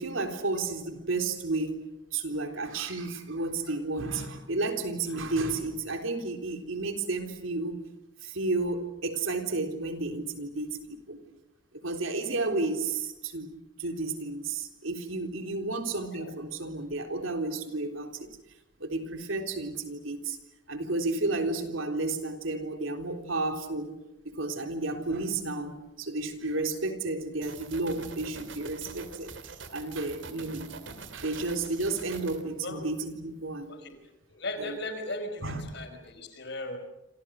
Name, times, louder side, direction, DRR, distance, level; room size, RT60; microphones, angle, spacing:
voice 1, 0.0-1.8 2.1-7.8 8.2-11.2 11.8-13.5 13.8-18.3 18.8-20.4 20.7-23.9 24.2-29.4 29.7-30.7 31.1-33.8 34.6-34.8 35.4-35.7, right 3 dB, 90° right, 6 dB, 3.8 m, -32 dB
sound 1, 27.4-32.4, right 4 dB, 65° right, 2.8 m, -44 dB
voice 2, 34.3-36.8, left 1 dB, 60° left, 8 dB, 5.0 m, -37 dB
28.5 x 27.0 x 6.5 m, 0.94 s
head